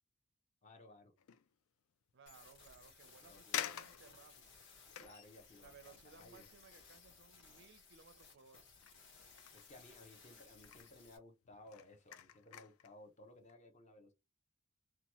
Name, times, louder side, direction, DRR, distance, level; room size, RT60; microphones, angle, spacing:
voice 1, 0.6-1.1 3.1-3.6 5.0-6.4 9.5-14.1, left 1 dB, 30° left, 0.6 m, -59 dB
sound 1, 1.2-1.5 2.1-2.2 3.0-3.1 3.5-8.5 8.8-10.3 10.5-11.0 11.4-12.9 13.4-13.5, left 11 dB, 75° left, 0.3 m, -48 dB
voice 2, 2.1-4.6 5.6-8.7, right 5 dB, 55° right, 0.4 m, -62 dB
sound 2, 2.3-11.2, left 4 dB, 55° left, 1.0 m, -61 dB
2.9 x 2.2 x 2.9 m
head